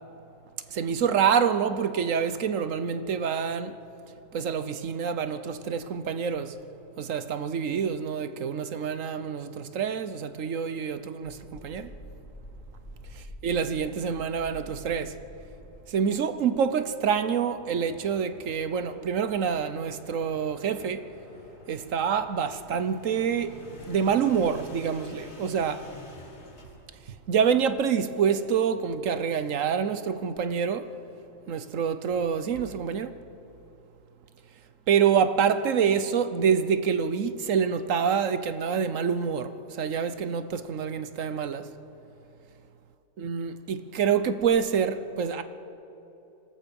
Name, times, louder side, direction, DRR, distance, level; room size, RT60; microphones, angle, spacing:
voice 1, 0.7-3.7 4.3-6.6 7.0-11.9 13.4-15.2 15.9-21.1 21.7-23.5 23.9-25.8 27.3-30.9 31.5-33.1 34.9-41.7 43.2-45.4, right 7 dB, 70° right, 1.2 m, -26 dB
sound 1, 11.2-15.9 17.3-27.2, left 1 dB, 50° left, 3.5 m, -48 dB
26.0 x 18.5 x 5.4 m
omnidirectional pair, 1.5 m